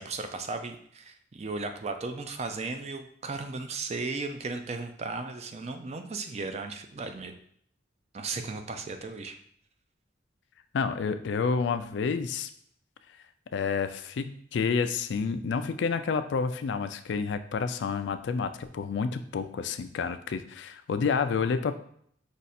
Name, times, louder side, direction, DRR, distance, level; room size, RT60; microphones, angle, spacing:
voice 1, 0.0-7.3 8.1-9.3, right 3 dB, 35° right, 7 dB, 0.4 m, -36 dB
voice 2, 10.7-12.5 13.5-21.7, left 5 dB, 70° left, 10 dB, 0.3 m, -29 dB
5.1 x 2.4 x 4.2 m, 0.64 s
head